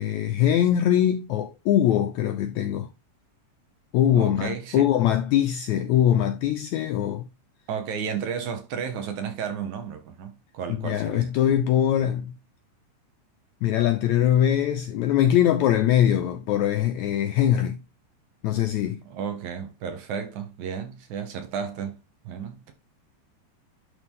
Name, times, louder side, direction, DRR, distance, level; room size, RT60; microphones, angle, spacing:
voice 1, 0.0-2.9 3.9-7.2 10.8-12.3 13.6-17.8 18.4-19.0, left 10 dB, 80° left, 1.7 m, -22 dB
voice 2, 4.1-4.9 7.7-11.3 19.0-22.7, right 7 dB, 65° right, 2.4 m, -33 dB
11.0 x 3.8 x 3.6 m
omnidirectional pair, 3.9 m